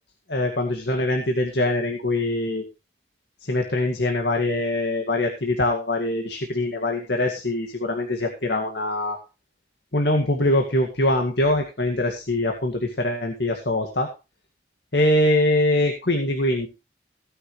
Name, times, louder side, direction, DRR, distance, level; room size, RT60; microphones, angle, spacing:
voice 1, 0.3-2.6 3.4-9.2 9.9-14.1 14.9-16.7, left 1 dB, 70° left, 3 dB, 2.1 m, -23 dB
16.5 x 10.5 x 3.3 m, 0.29 s
head